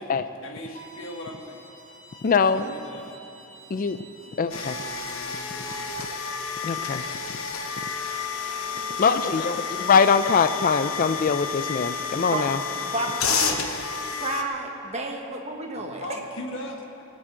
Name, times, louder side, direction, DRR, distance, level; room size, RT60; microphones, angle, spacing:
voice 1, 0.0-1.7 2.4-3.2 4.8-6.1 8.7-9.5 15.7-17.0, left 1 dB, 65° left, 2 dB, 1.7 m, -40 dB
Bowed string instrument, 0.7-5.7, right 2 dB, 80° right, 1.9 m, -49 dB
voice 2, 2.2-2.7 3.7-4.0 4.4-4.8 6.6-7.1 9.0-12.6, left 5 dB, 40° left, 11 dB, 0.4 m, -22 dB
sound 1, 4.5-14.4, left 5 dB, 90° left, 1.1 m, -30 dB
voice 3, 12.8-13.6 14.2-16.0, right 2 dB, 30° right, 1 dB, 1.4 m, -31 dB
18.5 x 6.2 x 8.2 m, 2.8 s
head